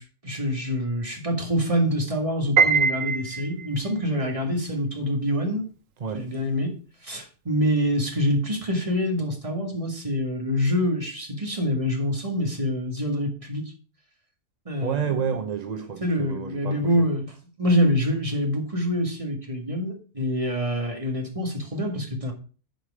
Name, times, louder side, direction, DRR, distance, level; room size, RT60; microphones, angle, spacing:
voice 1, 0.0-5.7 6.1-6.8 7.0-13.6 14.7-15.0 16.0-17.3 17.6-22.3, equal, 25° right, 2.0 m, -26 dB
Piano, 2.6-3.9, right 5 dB, 65° right, 1.2 m, -22 dB
voice 2, 6.0-6.3 14.8-17.1, right 6 dB, 45° right, 0.6 m, -30 dB
10.5 x 4.8 x 4.9 m
omnidirectional pair, 1.5 m